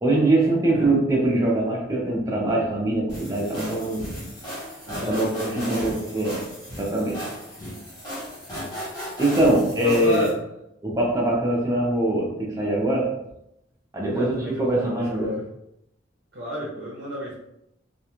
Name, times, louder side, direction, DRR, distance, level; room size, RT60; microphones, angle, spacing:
voice 1, 0.0-4.1 5.1-6.4 6.8-7.3 9.2-10.2 10.8-13.1 13.9-14.3 14.6-15.4, right 1 dB, 15° right, -3 dB, 0.6 m, -22 dB
sound 1, 3.1-10.3, equal, 20° left, 1.0 m, -36 dB
voice 2, 4.9-5.9 8.6-9.0 9.8-10.4 14.1-15.4 16.3-17.3, equal, 60° right, -5 dB, 0.6 m, -32 dB
2.4 x 2.3 x 2.9 m, 0.82 s
head